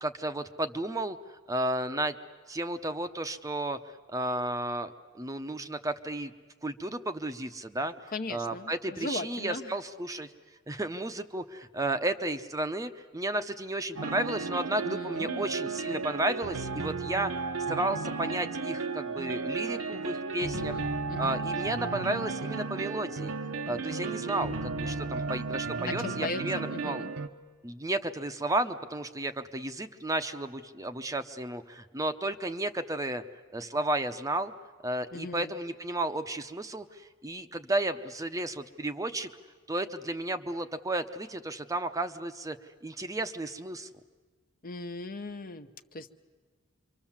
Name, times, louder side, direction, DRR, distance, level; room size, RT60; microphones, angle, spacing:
voice 1, 0.0-2.1 2.5-3.8 4.1-6.3 6.6-7.9 8.3-10.3 10.7-17.3 17.7-20.8 21.2-23.3 23.7-27.0 27.6-33.2 33.5-34.5 34.8-39.3 39.7-42.6 42.8-43.9, right 1 dB, 15° right, 9 dB, 0.8 m, -33 dB
voice 2, 8.1-9.8 14.8-15.5 20.4-21.4 23.8-24.6 25.9-27.1 35.1-35.5 44.6-46.1, left 3 dB, 45° left, 9 dB, 0.9 m, -39 dB
sound 1, 14.0-27.3, right 4 dB, 85° right, 1.1 m, -34 dB
27.0 x 24.5 x 7.3 m, 1.5 s
head